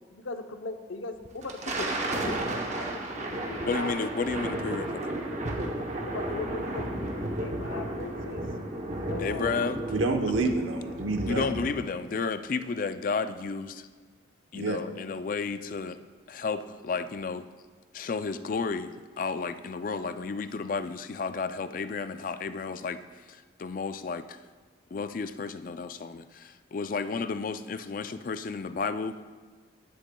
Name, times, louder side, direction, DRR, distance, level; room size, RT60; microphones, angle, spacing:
voice 1, 0.1-2.5 2.9-3.9 6.1-8.4 9.0-9.5, left 3 dB, 85° left, 7 dB, 0.7 m, -39 dB
Thunder, 1.3-12.0, right 1 dB, 35° right, 0.8 m, -33 dB
voice 2, 3.7-5.1 9.2-9.8 11.3-13.9 14.5-16.0 16.3-17.5 17.9-24.2 24.9-29.2, left 4 dB, 45° left, 11 dB, 0.3 m, -32 dB
voice 3, 9.9-11.5 14.5-14.8, right 2 dB, 90° right, 4 dB, 0.9 m, -28 dB
13.0 x 10.0 x 2.2 m, 1.4 s
head